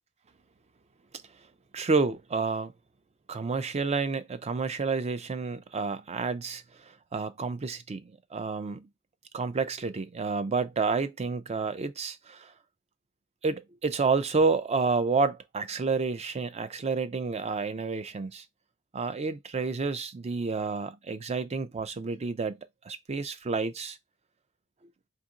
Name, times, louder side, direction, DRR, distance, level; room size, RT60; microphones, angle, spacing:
voice 1, 1.7-2.7 3.3-8.9 9.3-12.5 13.4-18.4 18.9-24.0, right 4 dB, 30° right, 0.4 m, -30 dB
4.1 x 3.6 x 2.5 m
head